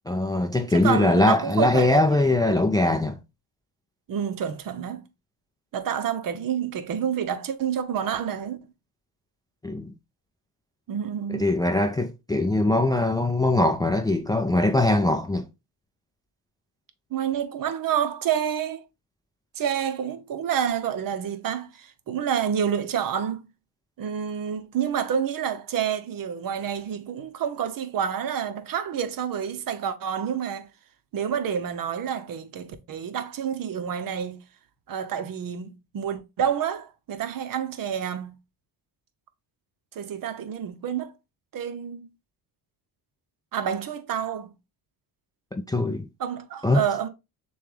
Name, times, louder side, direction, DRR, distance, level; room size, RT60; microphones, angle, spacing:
voice 1, 0.1-3.2 9.6-9.9 11.3-15.5 45.5-46.0 46.6-46.8, left 2 dB, 10° left, 0.4 m, -22 dB
voice 2, 0.7-2.3 4.1-5.0 5.7-8.6 10.9-11.5 17.1-18.8 19.6-23.4 24.0-30.7 31.1-34.4 34.9-38.3 40.0-41.1 41.5-42.1 43.5-44.5 46.2-47.1, right 8 dB, 55° right, 0.8 m, -28 dB
6.6 x 2.3 x 3.2 m
cardioid pair, 115°, 42 cm